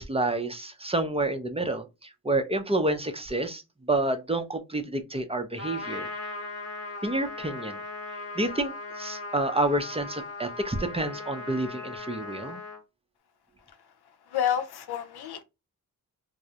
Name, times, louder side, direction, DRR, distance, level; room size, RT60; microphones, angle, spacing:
voice 1, 0.0-6.1 7.0-7.8 8.4-12.6, right 2 dB, 15° right, 0.5 m, -29 dB
Trumpet, 5.6-12.8, left 2 dB, 40° left, 0.9 m, -38 dB
voice 2, 14.3-15.4, left 9 dB, 90° left, 0.5 m, -29 dB
2.3 x 2.0 x 2.7 m
cardioid pair, 55°, 38 cm